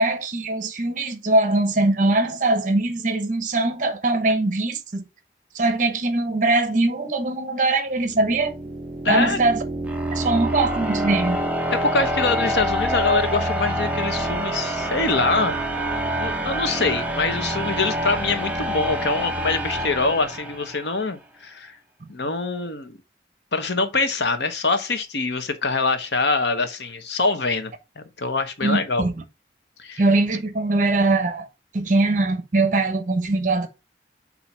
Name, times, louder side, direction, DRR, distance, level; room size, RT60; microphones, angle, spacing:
voice 1, 0.0-5.1 5.5-8.5 9.1-9.6 10.1-11.4 22.0-22.1 28.6-29.1 30.0-31.5 31.7-33.7, right 2 dB, 45° right, 1.0 m, -21 dB
sound 1, 8.0-20.9, right 1 dB, 10° right, 0.7 m, -26 dB
voice 2, 9.0-9.5 11.7-15.6 16.2-21.8 22.1-23.0 23.5-29.0 29.8-30.0, left 3 dB, 80° left, 1.0 m, -24 dB
7.1 x 2.8 x 5.4 m
head